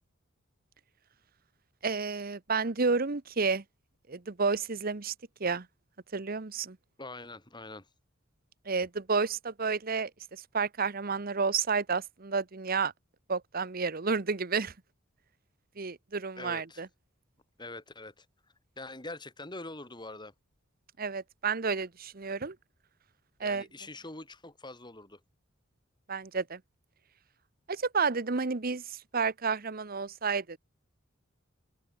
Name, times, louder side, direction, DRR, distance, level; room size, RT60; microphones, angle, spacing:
voice 1, 1.8-3.6 4.1-5.1 5.4-5.7 6.1-6.8 8.7-12.9 13.3-14.7 15.8-16.9 21.0-22.6 23.4-23.7 26.1-26.6 27.7-30.6, right 4 dB, 45° right, 1.0 m, -31 dB
voice 2, 7.0-7.9 16.4-16.8 17.6-18.3 18.8-20.3 23.4-25.2, left 2 dB, 20° left, 4.3 m, -44 dB
head